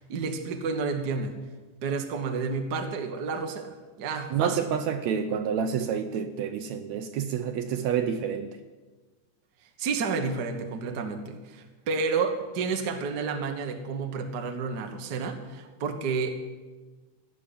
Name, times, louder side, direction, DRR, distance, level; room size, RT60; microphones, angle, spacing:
voice 1, 0.0-1.4 1.8-4.7 9.8-16.3, right 4 dB, 50° right, 5 dB, 1.2 m, -30 dB
voice 2, 4.3-8.6, right 7 dB, 75° right, 8 dB, 1.8 m, -28 dB
17.0 x 6.3 x 10.0 m, 1.3 s
omnidirectional pair, 3.6 m